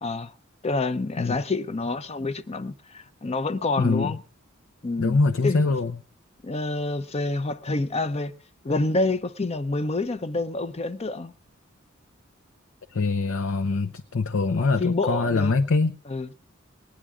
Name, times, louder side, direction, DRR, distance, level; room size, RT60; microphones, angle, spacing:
voice 1, 0.0-0.3 0.6-4.2 4.8-5.7 6.4-8.3 8.6-11.3 14.6-15.5 16.1-16.3, left 2 dB, 30° left, 0.6 m, -28 dB
voice 2, 3.8-4.1 5.0-5.9 12.9-16.0, left 3 dB, 75° left, 0.7 m, -23 dB
19.5 x 10.0 x 3.6 m
head